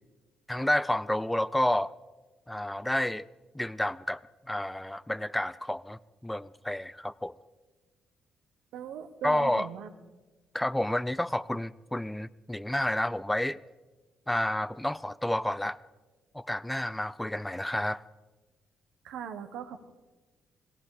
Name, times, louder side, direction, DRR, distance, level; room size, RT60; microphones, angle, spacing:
voice 1, 0.5-1.9 2.5-3.3 3.5-4.2 4.5-7.3 9.2-9.7 10.5-13.6 14.3-15.8 16.3-18.0, left 1 dB, 10° left, 18 dB, 0.4 m, -30 dB
voice 2, 8.7-9.9 19.0-19.9, right 8 dB, 85° right, 8 dB, 1.1 m, -39 dB
17.5 x 16.0 x 4.9 m, 1.2 s
cardioid pair, 90°, 0 cm